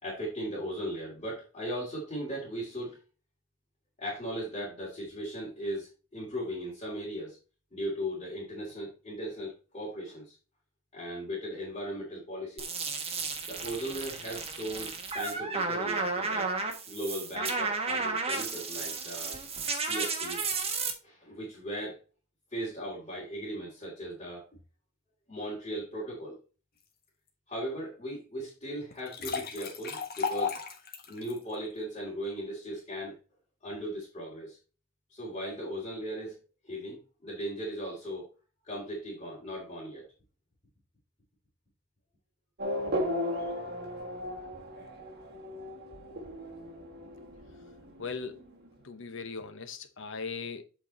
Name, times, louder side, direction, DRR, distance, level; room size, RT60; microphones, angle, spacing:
voice 1, 0.0-3.0 4.0-7.4 7.7-10.4 10.9-12.7 13.5-16.5 16.9-19.4 19.8-20.5 21.0-22.0 22.5-24.4 25.3-26.4 27.5-30.6 31.1-33.1 33.6-34.6 35.1-36.4 36.6-38.3 38.6-40.0, equal, 30° left, 2.8 m, -37 dB
sound 1, 12.6-20.9, right 4 dB, 30° right, 1.3 m, -33 dB
sound 2, 28.9-31.4, left 5 dB, 45° left, 1.5 m, -34 dB
Race car auto racing / Accelerating revving vroom, 42.6-48.7, left 1 dB, 50° right, 1.5 m, -36 dB
voice 2, 48.0-48.4 48.8-50.6, left 5 dB, 65° left, 1.0 m, -38 dB
8.1 x 4.6 x 4.2 m
head